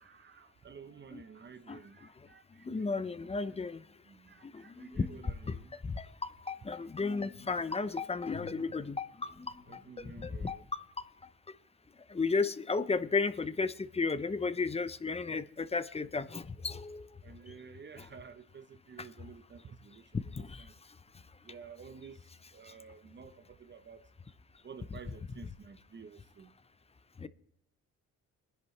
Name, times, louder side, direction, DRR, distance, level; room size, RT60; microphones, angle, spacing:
voice 1, 0.0-2.9 3.2-3.4 4.0-5.8 9.7-10.7 17.2-20.8 21.4-24.1 24.6-26.5, right 6 dB, 35° right, 0.9 m, -52 dB
voice 2, 2.6-3.8 4.4-5.6 5.8-11.1 11.5-11.6 12.1-17.1 20.1-20.6 27.2-27.3, left 4 dB, 20° left, 0.7 m, -34 dB
sound 1, 7.1-7.8 8.3-10.5 10.8-10.9, left 7 dB, 80° left, 3.8 m, -56 dB
22.5 x 10.5 x 3.3 m
cardioid pair, 90°, 30 cm